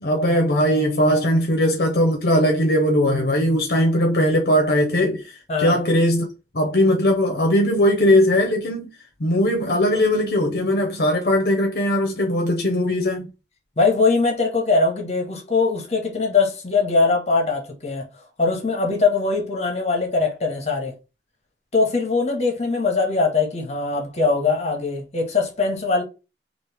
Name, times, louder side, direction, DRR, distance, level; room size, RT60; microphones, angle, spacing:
voice 1, 0.0-6.3 6.5-8.9 9.2-13.3, equal, 60° left, 0.7 m, -19 dB
voice 2, 13.8-18.0 18.4-20.9 21.7-26.0, left 4 dB, 35° left, 1.0 m, -21 dB
3.1 x 2.5 x 3.4 m
head